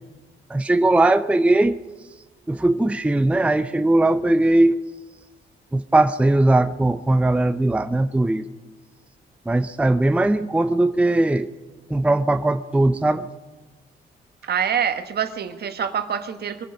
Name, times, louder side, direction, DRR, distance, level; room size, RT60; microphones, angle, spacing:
voice 1, 0.5-1.8 2.5-4.8 5.7-8.5 9.5-11.5 11.9-13.3, right 2 dB, 5° right, 10 dB, 0.5 m, -19 dB
voice 2, 14.4-16.6, right 8 dB, 55° right, 8 dB, 1.3 m, -25 dB
23.0 x 11.0 x 5.3 m, 1.3 s
cardioid pair, 90°, 20 cm